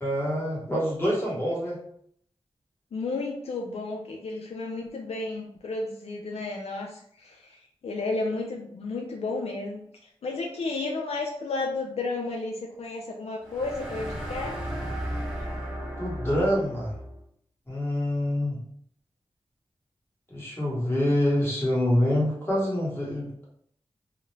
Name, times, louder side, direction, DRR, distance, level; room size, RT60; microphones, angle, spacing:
voice 1, 0.0-1.8 16.0-16.9 17.7-18.6 20.3-23.3, left 1 dB, 20° left, -5 dB, 1.1 m, -26 dB
voice 2, 2.9-14.6, left 3 dB, 75° left, 1 dB, 0.4 m, -32 dB
sound 1, 13.4-17.2, equal, 5° right, 0.6 m, -34 dB
2.4 x 2.0 x 3.1 m, 0.66 s
wide cardioid pair, 85°, 11 cm